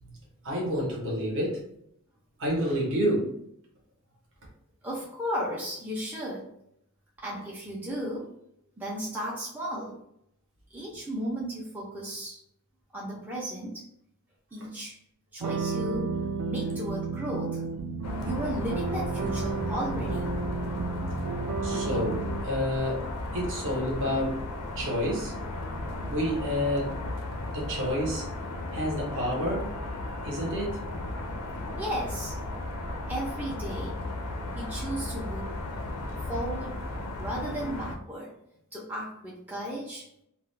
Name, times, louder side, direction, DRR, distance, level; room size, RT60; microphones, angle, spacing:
voice 1, 0.4-1.6 2.4-3.4 14.6-14.7 21.6-24.5 24.8-25.4 26.0-27.0 27.5-28.3 28.7-29.7 30.2-30.9, equal, 60° right, -3 dB, 0.7 m, -29 dB
voice 2, 4.8-6.5 7.2-8.3 8.8-10.0 10.7-12.4 12.9-13.8 14.5-15.0 15.3-17.6 18.2-20.3 31.8-32.4 33.1-34.0 34.5-35.5 36.3-36.8 37.2-38.3 38.7-40.1, equal, 10° right, -5 dB, 0.4 m, -35 dB
sound 1, 15.4-22.4, right 4 dB, 85° right, 0.3 m, -32 dB
sound 2, 18.0-38.0, left 2 dB, 85° left, 0.4 m, -35 dB
2.3 x 2.1 x 3.1 m, 0.75 s
head